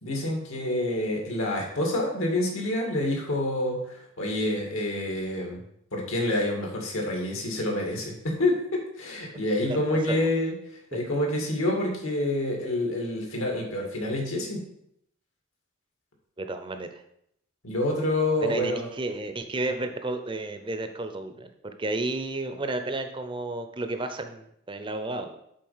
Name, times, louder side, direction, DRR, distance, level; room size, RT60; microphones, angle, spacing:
voice 1, 0.0-5.6 5.9-10.5 10.9-14.6 17.6-18.9, left 1 dB, 80° left, 0 dB, 2.1 m, -27 dB
voice 2, 9.7-10.3 16.4-17.0 18.4-25.4, right 2 dB, 25° right, 7 dB, 0.6 m, -32 dB
7.6 x 4.2 x 5.6 m, 0.75 s
head